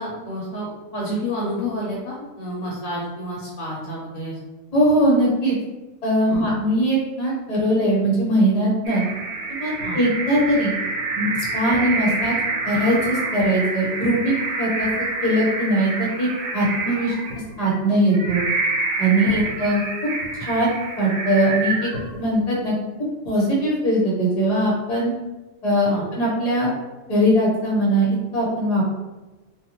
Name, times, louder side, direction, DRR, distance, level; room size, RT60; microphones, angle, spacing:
voice 1, 0.0-4.4 6.3-6.4 9.8-10.0 11.7-11.8 19.2-19.4 25.9-26.0, equal, 65° left, -4 dB, 0.9 m, -29 dB
voice 2, 4.7-5.6 6.0-9.0 9.5-10.7 11.1-12.3 12.6-14.9 15.2-16.3 16.5-17.2 17.6-18.4 19.0-19.3 19.6-19.8 20.4-20.7 21.0-21.9 22.2-22.7 23.2-25.1 25.6-26.7 27.1-28.8, right 1 dB, 35° left, -4 dB, 0.8 m, -20 dB
sound 1, 8.9-22.4, right 3 dB, 75° right, 0.9 m, -27 dB
2.5 x 2.4 x 2.9 m, 1.1 s
omnidirectional pair, 1.5 m